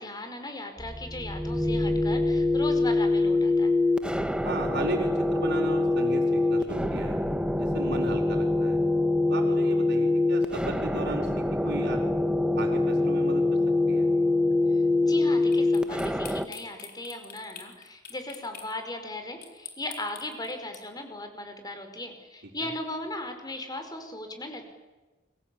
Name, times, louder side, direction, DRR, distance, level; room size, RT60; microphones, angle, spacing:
voice 1, 0.0-3.7 14.7-24.6, left 1 dB, 20° left, 6 dB, 4.8 m, -38 dB
sound 1, 0.8-16.4, left 2 dB, 5° right, 1.1 m, -25 dB
voice 2, 4.4-7.2 7.6-8.8 9.3-11.3 11.6-12.0 12.6-13.4 13.9-14.1 22.6-22.7, right 2 dB, 60° right, -7 dB, 5.0 m, -35 dB
sound 2, 15.5-18.7 19.4-20.8, left 8 dB, 55° left, 4.4 m, -44 dB
30.0 x 23.5 x 8.4 m, 1.2 s
head